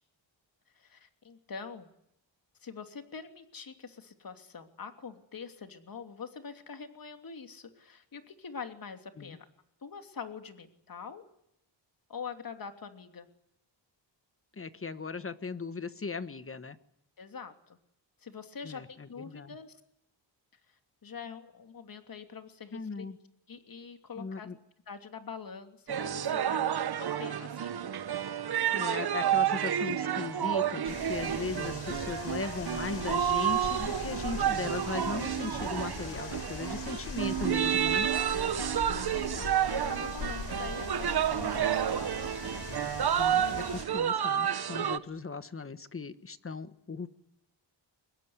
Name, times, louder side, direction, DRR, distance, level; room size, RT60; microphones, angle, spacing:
voice 1, 0.7-1.9 2.6-9.5 9.8-11.2 12.1-13.3 17.2-17.8 18.2-19.8 21.0-23.1 23.5-24.5 24.9-26.7 27.0-27.7 38.4-42.3, left 6 dB, 45° left, 7 dB, 2.9 m, -44 dB
voice 2, 14.6-16.8 18.6-19.6 22.7-23.2 24.2-24.6 28.7-38.1 43.2-47.1, left 4 dB, 30° left, 12 dB, 1.3 m, -38 dB
sound 1, 25.9-45.0, right 9 dB, 55° right, 1.2 m, -30 dB
sound 2, 30.9-43.9, left 5 dB, 65° left, 6.2 m, -41 dB
24.0 x 21.5 x 9.6 m, 0.77 s
wide cardioid pair, 140°, 46 cm